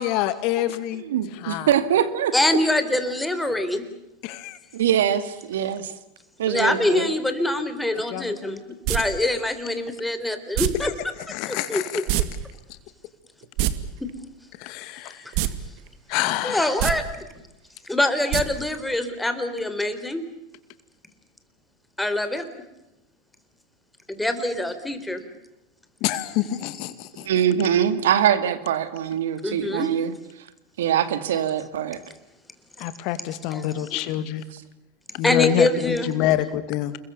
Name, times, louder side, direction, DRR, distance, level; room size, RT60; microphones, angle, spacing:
voice 1, 0.0-1.0 1.4-1.7 4.2-4.6 8.1-8.6 10.8-10.9 11.3-12.0 14.6-15.2 16.1-16.7 26.0-27.3 32.8-34.4 35.1-37.0, left 13 dB, 55° left, 13 dB, 2.4 m, -26 dB
voice 2, 1.0-2.3 4.7-5.9 6.4-7.1 27.2-30.1 30.8-32.0 34.5-34.6, right 9 dB, 80° right, 13 dB, 2.2 m, -23 dB
voice 3, 2.3-3.8 6.5-10.9 11.5-12.3 14.0-14.1 15.1-15.4 16.4-17.2 17.9-20.2 22.0-22.5 24.1-25.3 29.4-30.3 31.3-31.4 33.5-34.1 35.2-36.1, left 1 dB, 5° left, 10 dB, 4.0 m, -25 dB
sound 1, 8.8-9.0 10.5-10.7 12.1-12.2 12.5-12.6 13.4-13.7 15.3-15.5 15.9-16.0 16.7-16.9 18.3-18.4 18.7-18.8, right 15 dB, 60° right, 2.3 m, -22 dB
29.0 x 22.5 x 7.0 m, 0.95 s
hypercardioid pair, 100°, 0 cm